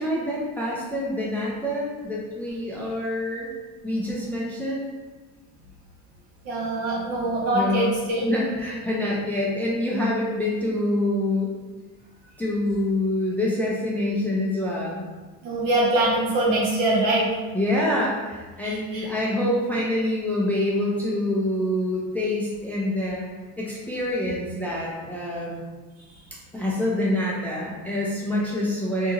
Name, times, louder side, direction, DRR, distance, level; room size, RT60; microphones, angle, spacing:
voice 1, 0.0-3.5 3.8-4.9 7.5-7.9 8.2-11.5 12.4-15.1 17.5-23.3 23.6-25.6 26.5-29.1, left 1 dB, 5° left, -5 dB, 0.4 m, -26 dB
voice 2, 6.4-8.2 15.4-17.3 18.6-19.1, right 2 dB, 70° right, -5 dB, 1.2 m, -23 dB
2.8 x 2.7 x 2.4 m, 1.3 s
cardioid pair, 125°, 34 cm